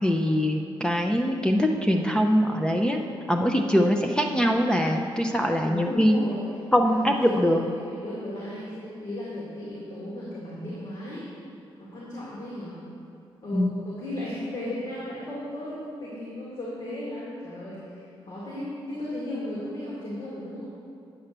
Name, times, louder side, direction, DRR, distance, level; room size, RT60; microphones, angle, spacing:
voice 1, 0.0-3.0 3.3-6.2 6.7-7.6 13.5-13.9, equal, 10° left, 2 dB, 0.6 m, -23 dB
voice 2, 5.6-6.4 6.8-11.3 11.8-12.8 13.4-20.7, left 1 dB, 55° left, -7 dB, 2.3 m, -35 dB
9.1 x 5.5 x 6.8 m, 2.7 s
cardioid pair, 110°, 10 cm